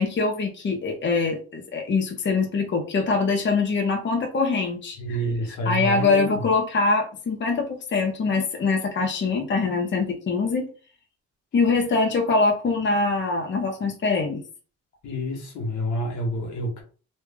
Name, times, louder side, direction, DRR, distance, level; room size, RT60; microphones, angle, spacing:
voice 1, 0.0-5.2 5.6-10.7 11.5-14.4, left 4 dB, 40° left, 1 dB, 0.9 m, -23 dB
voice 2, 5.0-6.4 15.0-16.8, equal, 80° left, 0 dB, 1.5 m, -28 dB
3.2 x 2.7 x 3.6 m, 0.38 s
cardioid pair, 90°, 30 cm